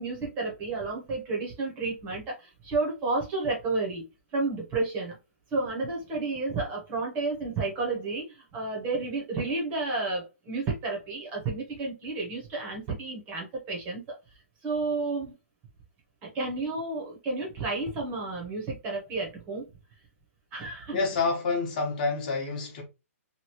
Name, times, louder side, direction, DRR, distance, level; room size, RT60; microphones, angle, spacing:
voice 1, 0.0-4.0 4.3-5.2 5.5-14.0 14.6-15.3 16.2-19.6 20.5-21.0, right 3 dB, 20° right, 0.8 m, -31 dB
voice 2, 20.9-22.8, left 4 dB, 35° left, 1.0 m, -28 dB
3.0 x 2.6 x 2.9 m
hypercardioid pair, 170°, 8 cm